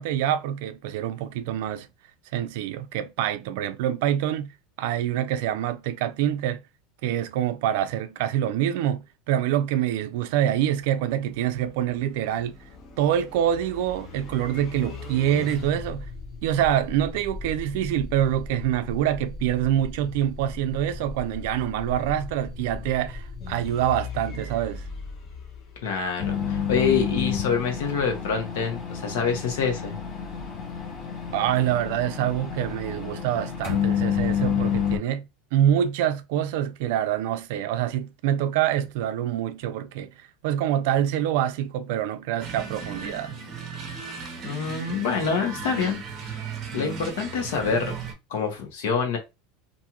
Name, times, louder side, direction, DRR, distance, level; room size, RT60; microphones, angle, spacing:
voice 1, 0.0-1.9 2.3-4.5 4.8-6.6 7.0-12.6 13.0-16.1 16.4-24.8 31.3-40.1 40.4-43.3, right 11 dB, 65° right, 0.4 m, -26 dB
sound 1, 10.7-26.4, left 3 dB, 35° left, 0.6 m, -39 dB
voice 2, 25.8-29.9 44.4-46.4 46.7-47.9 48.3-49.2, left 6 dB, 80° left, 1.0 m, -26 dB
sound 2, 26.2-35.0, left 8 dB, 55° left, 1.1 m, -29 dB
sound 3, 42.4-48.1, right 5 dB, 30° right, 0.7 m, -36 dB
2.6 x 2.4 x 2.9 m
supercardioid pair, 155°, 0 cm